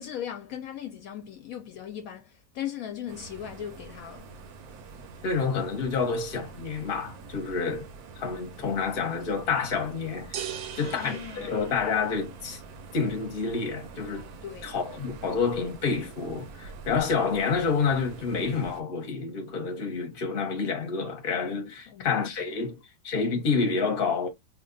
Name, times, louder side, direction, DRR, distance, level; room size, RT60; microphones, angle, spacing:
voice 1, 0.0-4.3 10.7-11.7 14.4-14.8 21.9-22.7, left 10 dB, 70° left, 1.0 m, -39 dB
sound 1, 3.1-18.8, right 4 dB, 80° right, 1.1 m, -45 dB
voice 2, 5.2-7.9 8.2-10.5 10.8-12.6 12.9-14.3 14.6-22.8 23.0-24.3, left 5 dB, 40° left, 0.9 m, -28 dB
sound 2, 10.3-12.4, right 9 dB, 65° right, 0.8 m, -39 dB
2.8 x 2.2 x 3.8 m
omnidirectional pair, 1.6 m